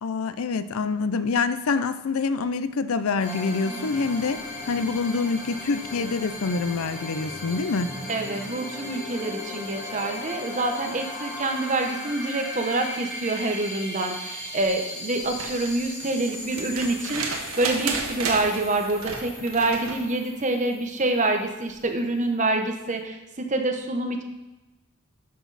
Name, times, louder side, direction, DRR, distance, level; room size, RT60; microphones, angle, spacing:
voice 1, 0.0-7.9, left 4 dB, 80° left, 12 dB, 0.5 m, -26 dB
sound 1, 3.2-21.7, left 1 dB, 35° left, 2.7 m, -37 dB
voice 2, 8.1-24.2, right 2 dB, 35° right, 4 dB, 1.0 m, -26 dB
sound 2, 15.2-20.1 21.7-21.8, right 4 dB, 85° right, 1.5 m, -33 dB
11.5 x 6.2 x 4.1 m, 1.0 s
head